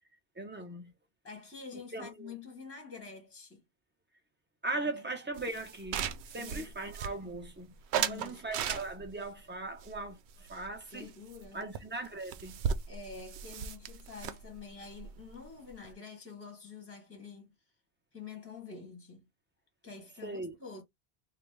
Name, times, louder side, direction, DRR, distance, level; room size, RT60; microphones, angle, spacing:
voice 1, 0.4-0.9 1.7-2.3 4.6-7.7 8.1-11.1 11.5-12.6 20.2-20.5, right 2 dB, 10° right, 1.0 m, -39 dB
voice 2, 1.2-3.6 4.8-5.0 6.4-6.7 7.9-8.4 10.9-11.7 12.9-17.5 18.1-19.3 19.8-20.8, left 5 dB, 10° left, 1.4 m, -47 dB
sound 1, 5.4-7.5 7.9-9.2 9.8-11.0 11.3-11.5 11.7-11.8 12.0-15.9, right 7 dB, 80° right, 0.8 m, -37 dB
3.9 x 2.4 x 3.3 m
omnidirectional pair, 1.1 m